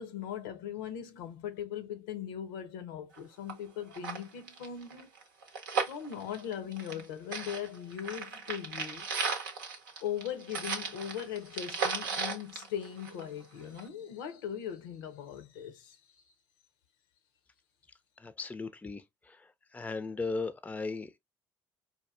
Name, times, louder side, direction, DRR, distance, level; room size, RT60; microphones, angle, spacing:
voice 1, 0.0-5.1 5.8-9.1 10.0-16.3, left 9 dB, 75° left, 0.6 m, -39 dB
sound 1, 3.1-3.2 3.5-3.6 3.9-7.0 7.3-13.4 13.8-13.9, right 5 dB, 80° right, 0.7 m, -36 dB
voice 2, 18.2-19.4 19.7-21.2, left 3 dB, 15° left, 0.4 m, -37 dB
4.3 x 2.3 x 2.2 m
hypercardioid pair, 55°, 11 cm